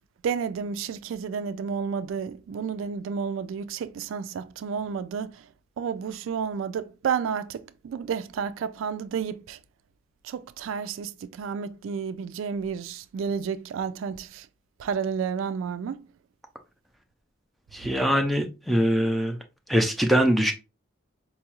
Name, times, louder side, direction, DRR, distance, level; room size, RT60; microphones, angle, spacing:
voice 1, 0.2-5.5 5.8-9.6 10.2-14.5 14.8-16.1, right 6 dB, 80° right, 0.3 m, -31 dB
voice 2, 17.7-19.4 19.7-20.5, equal, ahead, 0.4 m, -22 dB
4.6 x 2.3 x 2.8 m
head